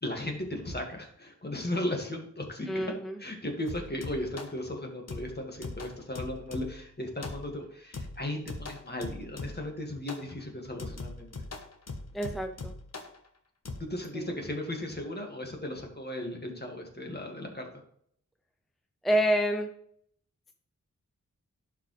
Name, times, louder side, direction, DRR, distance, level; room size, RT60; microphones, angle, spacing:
voice 1, 0.0-2.9 3.2-11.3 13.8-17.7, left 1 dB, 30° left, 2 dB, 2.0 m, -36 dB
voice 2, 2.7-3.2 12.1-12.7 14.1-14.3 19.0-19.7, equal, ahead, 5 dB, 0.6 m, -28 dB
sound 1, 3.7-4.6 5.1-6.9 7.2-7.6 7.9-9.8 10.1-10.3 10.8-13.2 13.7-13.8, left 3 dB, 55° left, 1.2 m, -41 dB
11.5 x 5.0 x 3.3 m, 0.67 s
wide cardioid pair, 65°, 31 cm